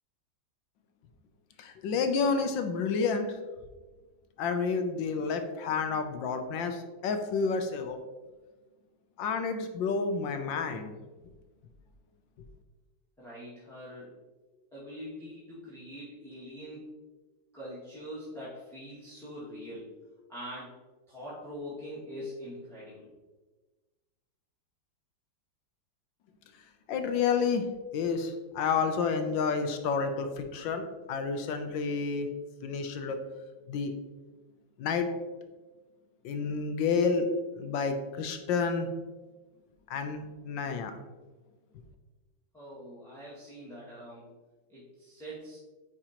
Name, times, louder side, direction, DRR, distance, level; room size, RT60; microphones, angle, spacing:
voice 1, 1.6-3.4 4.4-8.0 9.2-10.9 26.9-27.6 27.9-32.3 32.6-33.2 33.7-33.9 34.8-35.1 36.2-37.3 37.6-38.9 39.9-40.9, left 5 dB, 80° left, 7 dB, 1.4 m, -30 dB
voice 2, 13.2-14.2 14.7-16.8 17.5-19.9 20.3-20.8 21.1-23.1 42.5-44.3 44.7-45.6, equal, ahead, -11 dB, 1.9 m, -43 dB
9.1 x 4.9 x 2.9 m, 1.2 s
omnidirectional pair, 2.0 m